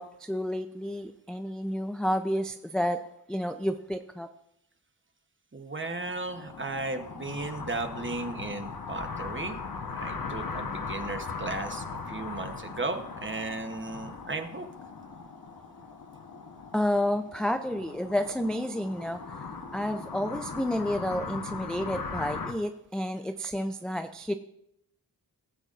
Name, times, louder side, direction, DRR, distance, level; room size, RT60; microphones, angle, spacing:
voice 1, 0.0-3.0 3.3-4.3 16.7-19.2 19.7-24.3, equal, ahead, 7 dB, 0.4 m, -30 dB
voice 2, 5.5-9.6 9.9-14.7, right 2 dB, 30° right, 6 dB, 0.9 m, -35 dB
sound 1, 5.8-22.5, left 4 dB, 55° left, 1.0 m, -39 dB
17.0 x 7.9 x 2.5 m, 0.78 s
wide cardioid pair, 95°, 41 cm